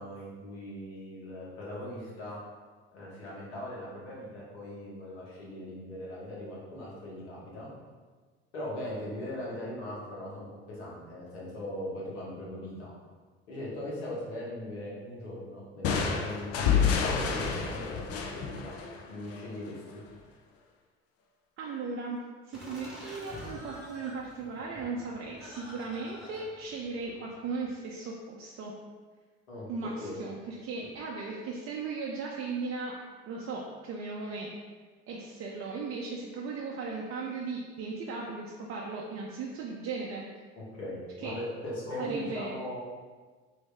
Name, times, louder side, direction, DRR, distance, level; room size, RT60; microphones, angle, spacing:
voice 1, 0.0-2.4 2.9-7.7 8.5-12.9 13.5-16.7 17.0-18.7 19.1-20.0 29.5-30.2 30.8-30.9 40.6-42.8, left 1 dB, 90° left, -6 dB, 1.1 m, -39 dB
sound 1, 15.8-19.5, left 6 dB, 50° left, 0.5 m, -29 dB
voice 2, 21.6-22.2 22.5-28.7 29.7-33.0 33.3-34.5 35.1-40.2 41.2-41.3 42.0-42.5, right 4 dB, 45° right, -2 dB, 0.5 m, -37 dB
Laughter, 22.5-27.7, equal, ahead, 1.1 m, -48 dB
3.0 x 2.7 x 3.3 m, 1.4 s
hypercardioid pair, 70°, 31 cm